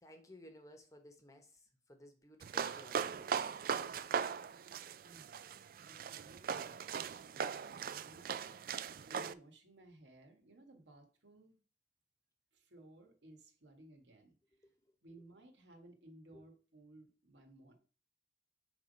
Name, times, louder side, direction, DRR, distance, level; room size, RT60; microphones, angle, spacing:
voice 1, 0.0-3.5 14.6-14.8 16.3-16.4, left 1 dB, 20° left, 1.0 m, -58 dB
sound 1, 2.4-9.3, right 7 dB, 50° right, 0.3 m, -39 dB
voice 2, 4.9-8.4 9.1-11.6 12.5-14.3 15.0-17.7, right 1 dB, 80° right, 1.6 m, -60 dB
7.3 x 3.6 x 5.3 m
head